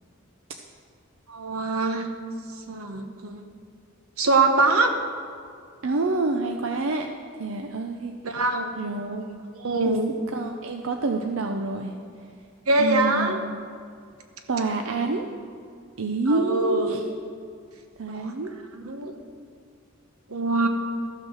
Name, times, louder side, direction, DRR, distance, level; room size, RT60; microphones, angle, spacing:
voice 1, 1.3-2.1 2.7-3.4 4.2-4.9 8.2-8.7 9.5-10.1 12.7-13.4 16.3-17.1 18.1-18.3 18.7-19.1 20.3-20.7, right 2 dB, 90° right, 5 dB, 1.1 m, -23 dB
voice 2, 5.8-7.1 7.4-8.1 8.8-9.4 9.9-10.0 10.3-11.9 12.8-13.6 14.5-15.3 16.0-17.0 18.0-18.5, right 3 dB, 70° right, 4 dB, 0.6 m, -27 dB
13.5 x 6.3 x 6.4 m, 2.3 s
head